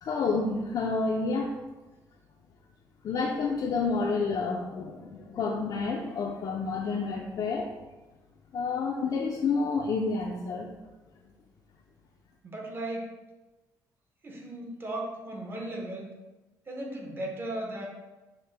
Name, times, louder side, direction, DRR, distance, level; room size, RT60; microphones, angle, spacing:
voice 1, 0.0-1.5 3.0-7.7 8.5-10.7, left 4 dB, 55° left, 0 dB, 0.4 m, -29 dB
voice 2, 12.4-13.1 14.2-16.1 16.7-17.9, right 1 dB, 30° right, 0 dB, 0.8 m, -36 dB
5.7 x 2.1 x 3.3 m, 1.1 s
cardioid pair, 115°, 8 cm